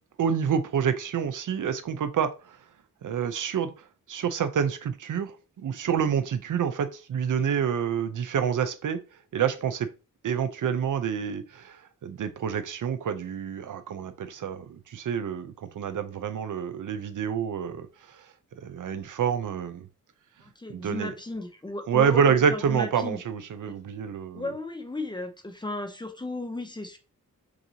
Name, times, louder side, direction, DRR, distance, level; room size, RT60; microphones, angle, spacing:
voice 1, 0.2-2.6 3.0-9.0 9.3-9.9 10.2-18.3 18.6-19.9 20.7-21.1 21.9-24.6, right 7 dB, 70° right, 0.6 m, -28 dB
voice 2, 20.4-23.2 24.3-27.0, left 2 dB, 15° left, 0.7 m, -35 dB
6.3 x 2.8 x 2.8 m
wide cardioid pair, 125°, 33 cm